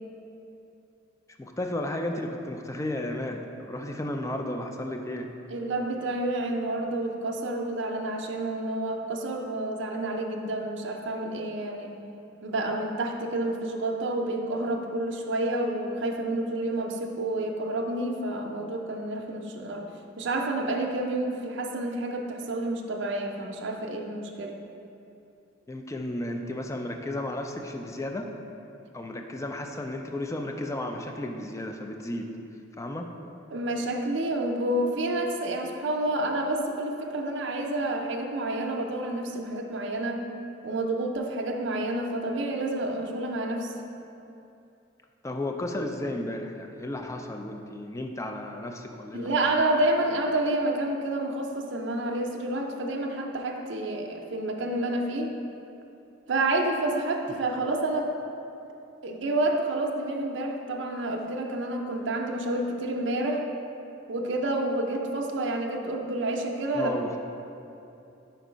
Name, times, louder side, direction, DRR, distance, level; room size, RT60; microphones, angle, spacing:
voice 1, 1.4-5.3 25.7-28.3 28.9-32.3 32.8-33.1 45.2-49.3 66.8-67.2, left 1 dB, 15° left, 4 dB, 0.3 m, -33 dB
voice 2, 5.5-11.9 12.4-19.9 20.2-24.6 33.5-40.2 40.6-43.7 49.1-55.3 56.3-58.1 59.0-63.4 64.1-66.9, right 1 dB, 65° right, 1 dB, 0.5 m, -29 dB
5.2 x 4.6 x 5.0 m, 2.8 s
head